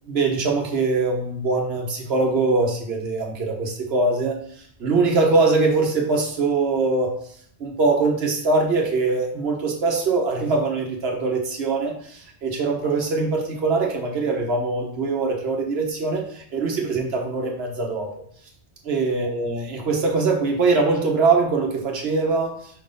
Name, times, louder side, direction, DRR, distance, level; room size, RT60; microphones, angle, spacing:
voice 1, 0.1-4.3 4.8-7.1 7.6-18.1 18.8-22.6, right 3 dB, 65° right, 0 dB, 1.4 m, -22 dB
4.9 x 3.9 x 5.2 m, 0.62 s
omnidirectional pair, 1.1 m